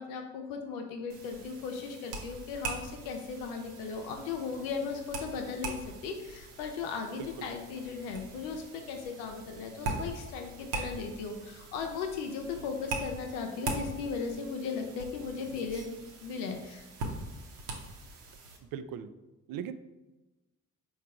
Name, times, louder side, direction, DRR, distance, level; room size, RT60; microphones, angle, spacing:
voice 1, 0.0-15.9 16.2-16.9, left 5 dB, 75° left, 4 dB, 0.6 m, -37 dB
sound 1, 1.1-18.6, right 3 dB, 70° right, 0.9 m, -42 dB
voice 2, 7.2-7.5 18.7-19.1 19.5-19.7, right 8 dB, 55° right, 12 dB, 0.5 m, -38 dB
4.6 x 2.4 x 4.7 m, 1.1 s
hypercardioid pair, 40°, 41 cm